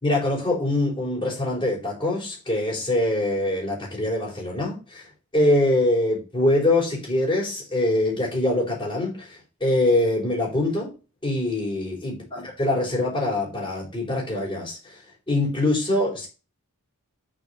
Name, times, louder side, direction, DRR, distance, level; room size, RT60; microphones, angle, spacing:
voice 1, 0.0-5.0 5.3-10.9 11.2-15.0 15.3-16.3, left 1 dB, 20° left, 4.1 m, -24 dB
7.1 x 5.2 x 5.5 m
head